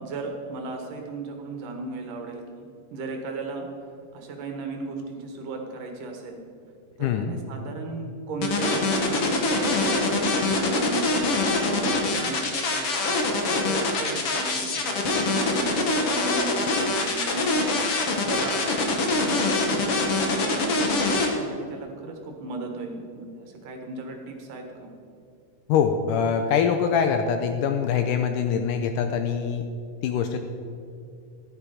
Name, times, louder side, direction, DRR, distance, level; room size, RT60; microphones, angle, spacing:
voice 1, 0.0-3.7 4.1-6.4 7.0-11.1 11.5-13.2 13.5-17.5 18.0-20.2 20.7-24.9, right 3 dB, 65° right, 3 dB, 2.8 m, -36 dB
voice 2, 7.0-7.3 25.7-29.6 30.0-30.4, left 7 dB, 80° left, 7 dB, 2.0 m, -24 dB
sound 1, 8.4-21.3, left 3 dB, 55° left, 1.8 m, -24 dB
14.5 x 11.0 x 4.9 m, 2.5 s
omnidirectional pair, 4.2 m